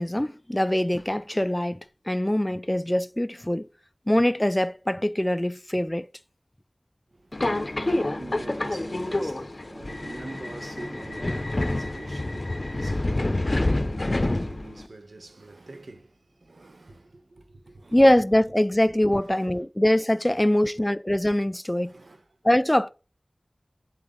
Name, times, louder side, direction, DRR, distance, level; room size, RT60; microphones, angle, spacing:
voice 1, 0.0-1.8 2.1-3.7 4.1-6.1 17.9-21.9 22.4-22.9, left 1 dB, 15° left, 0.4 m, -23 dB
Subway metro underground, 7.3-14.9, left 2 dB, 50° left, 0.8 m, -28 dB
voice 2, 7.8-16.1 16.4-18.0 19.1-19.6 20.5-20.6 21.8-22.2, right 2 dB, 90° right, 1.3 m, -45 dB
8.3 x 8.1 x 4.0 m
wide cardioid pair, 50°, 0 cm